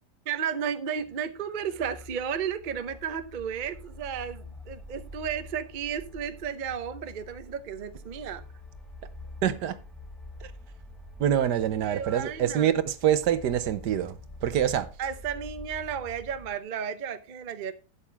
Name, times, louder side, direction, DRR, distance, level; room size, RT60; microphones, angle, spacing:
voice 1, 0.3-8.4 11.8-12.7 15.0-17.7, right 8 dB, 40° right, 0.7 m, -33 dB
sound 1, 1.0-16.6, left 1 dB, ahead, 1.0 m, -46 dB
voice 2, 9.4-9.8 10.4-10.5 11.2-14.9, right 10 dB, 75° right, 1.4 m, -25 dB
11.5 x 8.5 x 3.4 m
omnidirectional pair, 1.8 m